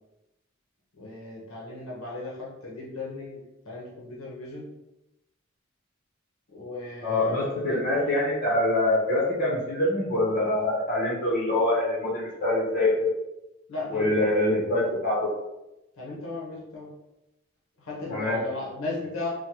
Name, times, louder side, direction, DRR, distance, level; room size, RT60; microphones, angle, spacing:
voice 1, 1.0-3.4 3.7-4.7 6.5-7.8 8.0-8.2 13.7-14.3 14.8-14.9 16.0-16.9 17.8-19.3, left 3 dB, 75° left, -5 dB, 0.8 m, -36 dB
voice 2, 7.0-13.1 13.9-15.3 18.1-18.4, left 1 dB, 45° left, -4 dB, 1.0 m, -25 dB
3.3 x 2.2 x 2.9 m, 0.92 s
head